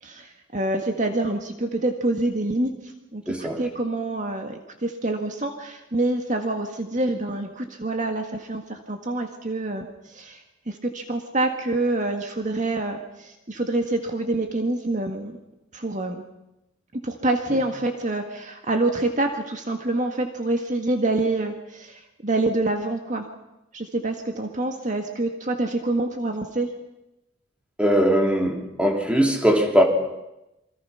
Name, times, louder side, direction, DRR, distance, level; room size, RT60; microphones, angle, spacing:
voice 1, 0.0-15.4 15.7-16.2 17.0-23.3 23.7-26.7, right 2 dB, 40° right, 4 dB, 1.9 m, -26 dB
voice 2, 3.3-3.6 27.8-29.8, equal, 5° right, 2 dB, 3.0 m, -20 dB
28.0 x 24.5 x 5.8 m, 0.93 s
head